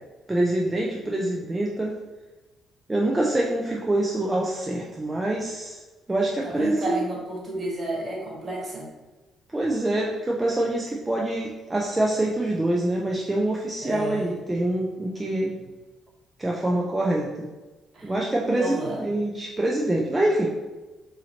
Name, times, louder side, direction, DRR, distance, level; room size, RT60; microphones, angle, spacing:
voice 1, 0.3-1.9 2.9-5.8 6.1-7.0 9.5-15.5 16.4-17.5 18.0-20.5, right 1 dB, 20° right, -3 dB, 0.5 m, -25 dB
voice 2, 6.4-8.9 13.8-14.3 17.9-18.1 18.4-19.0, right 2 dB, 45° right, -3 dB, 1.5 m, -32 dB
4.0 x 2.8 x 2.9 m, 1.2 s
supercardioid pair, 60°, 0 cm